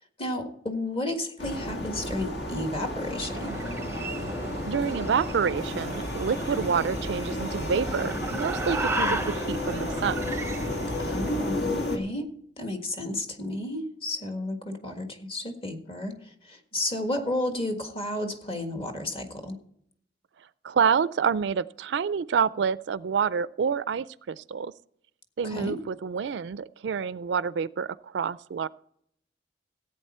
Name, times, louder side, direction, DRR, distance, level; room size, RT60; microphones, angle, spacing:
voice 1, 0.2-3.6 11.0-12.3 12.6-16.1 16.4-19.5 25.4-25.8, left 1 dB, 30° left, 5 dB, 1.6 m, -32 dB
sound 1, 1.4-12.0, left 1 dB, 65° left, 1.9 m, -32 dB
sound 2, 3.0-11.6, right 2 dB, 15° right, 0.6 m, -35 dB
voice 2, 4.7-10.2 20.6-24.7 25.4-28.7, right 6 dB, 75° right, 18 dB, 0.4 m, -28 dB
16.0 x 8.7 x 4.3 m, 0.70 s
head